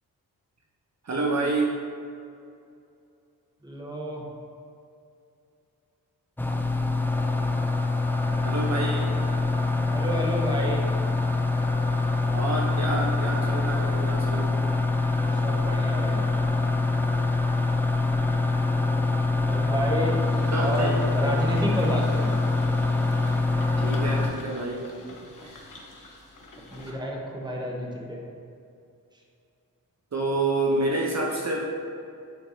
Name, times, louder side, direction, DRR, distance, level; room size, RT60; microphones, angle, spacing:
voice 1, 1.0-1.8 8.4-9.1 12.3-14.5 20.5-21.1 23.8-24.9 25.4-25.6 26.9-27.0 30.1-31.6, right 2 dB, 45° right, -2 dB, 0.9 m, -28 dB
voice 2, 3.6-4.3 9.9-10.8 15.2-16.2 19.5-20.2 20.6-22.4 26.7-28.2, equal, 10° right, -2 dB, 1.1 m, -30 dB
sound 1, 6.4-24.3, left 3 dB, 5° left, 0.4 m, -24 dB
sound 2, 20.1-26.9, left 2 dB, 60° left, 1.1 m, -47 dB
9.4 x 4.5 x 2.8 m, 2.5 s
wide cardioid pair, 80°, 37 cm